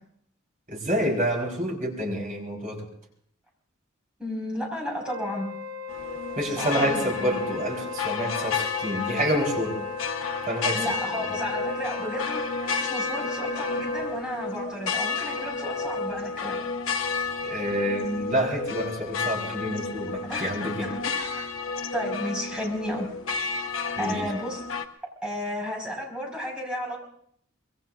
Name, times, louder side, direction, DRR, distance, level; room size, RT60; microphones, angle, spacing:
voice 1, 0.7-2.9 6.4-9.8 10.4-10.9 17.4-20.9 23.9-24.3, equal, 40° right, 0 dB, 4.5 m, -28 dB
voice 2, 4.2-5.5 6.6-7.3 10.7-12.4 12.8-16.6 20.3-20.5 20.8-21.5 21.9-23.1 24.0-24.6 25.2-27.0, equal, 5° right, -1 dB, 5.3 m, -33 dB
Wind instrument woodwind instrument, 5.0-14.2, left 3 dB, 85° right, 7.1 m, -38 dB
sound 1, 5.9-24.8, left 4 dB, 75° left, 1.1 m, -31 dB
25.0 x 21.5 x 2.6 m, 0.65 s
head